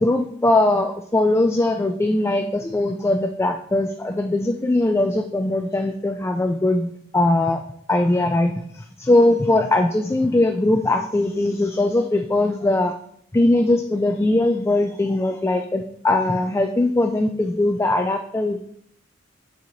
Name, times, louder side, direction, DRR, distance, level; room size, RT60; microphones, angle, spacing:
voice 1, 0.0-7.6 7.9-12.9 13.3-18.7, left 2 dB, 15° left, 5 dB, 0.3 m, -20 dB
6.8 x 4.7 x 4.0 m, 0.68 s
head